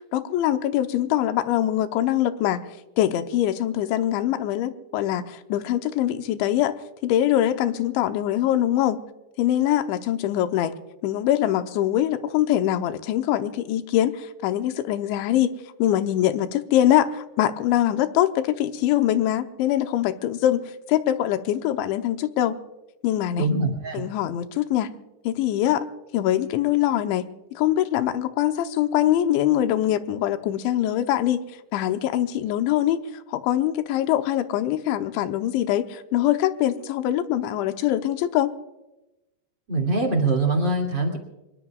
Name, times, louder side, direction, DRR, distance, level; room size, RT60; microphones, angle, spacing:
voice 1, 0.1-2.7 3.0-6.7 7.0-9.0 9.4-10.7 11.0-15.5 15.8-22.6 23.0-23.5 23.9-24.9 25.3-25.9 26.1-31.4 31.7-33.0 33.3-38.5, left 12 dB, 80° left, 8 dB, 3.1 m, -23 dB
voice 2, 23.4-24.1 39.7-41.2, right 2 dB, 30° right, 0 dB, 2.2 m, -23 dB
25.5 x 22.0 x 2.4 m, 0.98 s
omnidirectional pair, 5.4 m